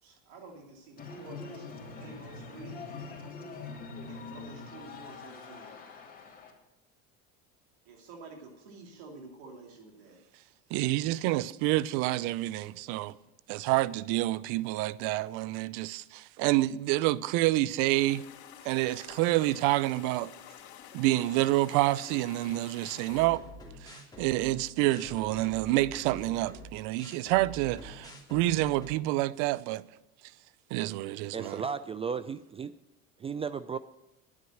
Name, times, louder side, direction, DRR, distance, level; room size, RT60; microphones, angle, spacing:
voice 1, 0.0-2.8 4.1-5.7 7.8-10.2 31.4-31.8, right 4 dB, 85° right, 3.0 m, -49 dB
sound 1, 1.0-6.5, left 4 dB, 25° left, 2.7 m, -44 dB
voice 2, 10.7-13.2 13.5-18.2 18.6-20.3 20.9-23.4 23.8-29.8 30.7-31.6, right 17 dB, 70° right, 0.6 m, -28 dB
sound 2, 17.9-23.3, left 11 dB, 65° left, 2.4 m, -50 dB
sound 3, 22.8-29.0, left 1 dB, 10° left, 2.6 m, -47 dB
voice 3, 31.3-32.7 33.2-33.8, right 6 dB, 20° right, 0.3 m, -34 dB
10.5 x 9.7 x 7.8 m
supercardioid pair, 105°, 31 cm